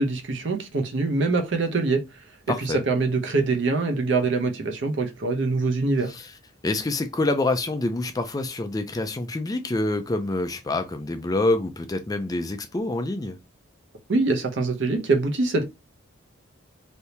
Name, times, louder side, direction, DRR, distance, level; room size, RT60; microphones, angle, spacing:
voice 1, 0.0-2.0 2.6-6.1 14.1-15.6, right 3 dB, 60° right, 0.7 m, -24 dB
voice 2, 2.5-2.8 6.1-6.3 6.6-13.4, left 2 dB, 20° left, 0.4 m, -26 dB
3.3 x 2.7 x 2.8 m
head